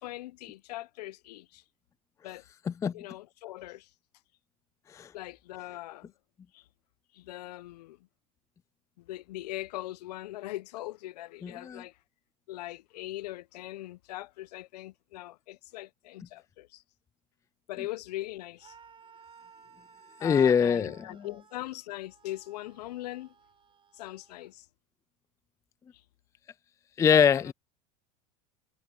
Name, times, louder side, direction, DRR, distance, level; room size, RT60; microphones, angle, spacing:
voice 1, 0.0-1.6 2.2-2.4 2.9-3.9 5.1-6.1 6.5-6.6 7.1-8.0 9.0-12.0 12.5-16.8 17.7-18.7 20.2-23.3 23.9-24.7 27.1-27.5, left 16 dB, 75° left, 1.1 m, -41 dB
voice 2, 2.7-3.0 4.9-5.1 11.4-11.8 20.2-21.3 27.0-27.5, left 7 dB, 15° left, 0.4 m, -24 dB
Screaming, 18.6-24.5, right 6 dB, 25° right, 7.2 m, -57 dB
hypercardioid pair, 100°, 21 cm